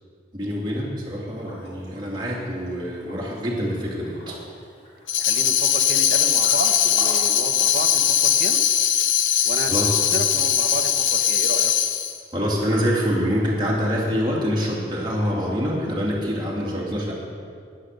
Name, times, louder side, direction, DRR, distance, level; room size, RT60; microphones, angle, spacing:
voice 1, 0.3-4.4 9.7-10.0 12.3-17.1, equal, 25° right, -5 dB, 2.5 m, -25 dB
Liquid, 1.3-7.5, left 1 dB, 35° left, 3.5 m, -43 dB
Tambourine, 5.1-12.2, left 10 dB, 85° left, 0.8 m, -20 dB
voice 2, 5.2-8.6 9.4-11.7 16.6-17.1, right 2 dB, 50° right, 7 dB, 0.8 m, -32 dB
10.5 x 10.0 x 6.5 m, 2.3 s
head